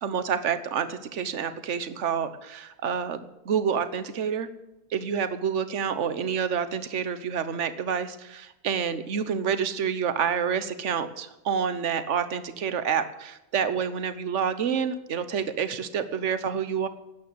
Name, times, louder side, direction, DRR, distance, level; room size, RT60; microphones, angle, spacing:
voice 1, 0.0-4.5 4.9-16.9, right 7 dB, 55° right, 12 dB, 1.2 m, -28 dB
12.0 x 9.4 x 9.6 m, 0.96 s
omnidirectional pair, 1.6 m